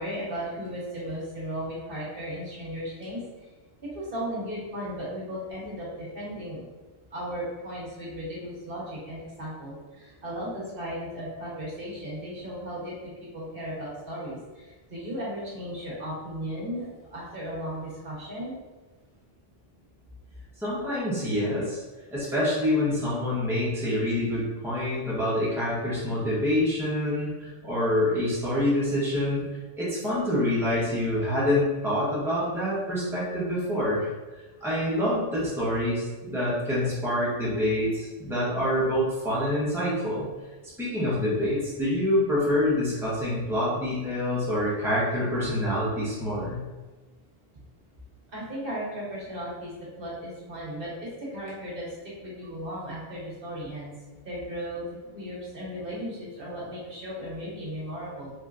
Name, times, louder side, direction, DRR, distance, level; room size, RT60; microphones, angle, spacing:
voice 1, 0.0-3.5 3.8-6.6 7.1-18.6 48.3-51.9 52.2-53.9 54.2-54.8 55.1-58.3, equal, 60° right, -6 dB, 1.3 m, -36 dB
voice 2, 20.6-21.8 22.1-29.4 29.8-34.1 34.6-40.2 40.8-46.6, left 1 dB, ahead, -9 dB, 1.1 m, -26 dB
4.2 x 2.9 x 2.5 m, 1.2 s
omnidirectional pair, 1.1 m